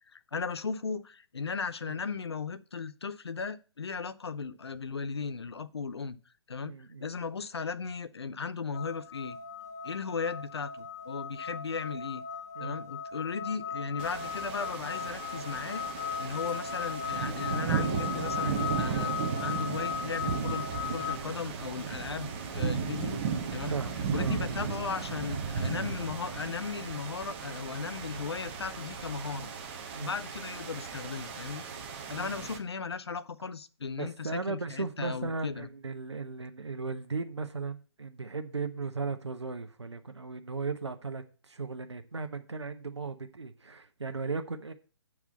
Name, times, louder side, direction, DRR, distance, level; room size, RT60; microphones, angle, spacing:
voice 1, 0.1-6.2 6.5-9.4 9.8-12.2 12.6-15.8 16.2-23.2 23.5-23.7 24.1-29.5 30.0-31.6 32.1-35.7, left 5 dB, 65° left, 0.7 m, -36 dB
voice 2, 6.7-7.1 12.6-12.8 23.7-24.4 29.9-30.2 32.1-32.4 34.0-44.7, right 4 dB, 75° right, 1.0 m, -36 dB
sound 1, 8.7-21.2, left 8 dB, 30° left, 0.9 m, -37 dB
sound 2, 14.0-32.6, right 6 dB, 25° right, 1.0 m, -35 dB
7.7 x 4.8 x 7.2 m
figure-of-eight pair, 140°, 15 cm